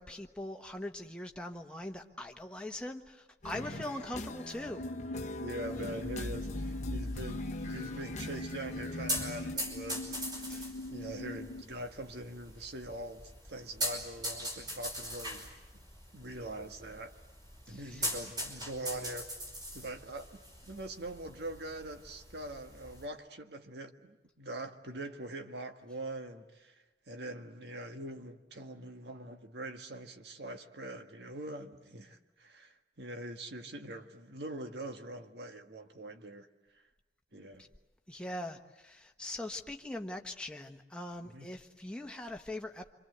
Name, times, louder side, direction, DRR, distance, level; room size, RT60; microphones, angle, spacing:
voice 1, 0.0-4.9 10.5-10.7 17.7-18.1 37.6-37.7 38.1-42.9, left 1 dB, 5° left, 1.3 m, -42 dB
sound 1, 3.4-9.6, left 1 dB, 40° left, 1.0 m, -41 dB
voice 2, 3.5-3.9 5.4-10.6 10.9-15.5 15.7-15.8 16.1-17.2 17.7-19.4 19.7-26.7 27.1-36.5 37.3-37.7 41.2-41.5, right 1 dB, 70° right, 1.7 m, -43 dB
sound 2, 4.8-11.6, left 2 dB, 80° left, 0.8 m, -42 dB
sound 3, 5.6-23.1, equal, 25° right, 5.3 m, -42 dB
26.5 x 26.0 x 8.1 m
head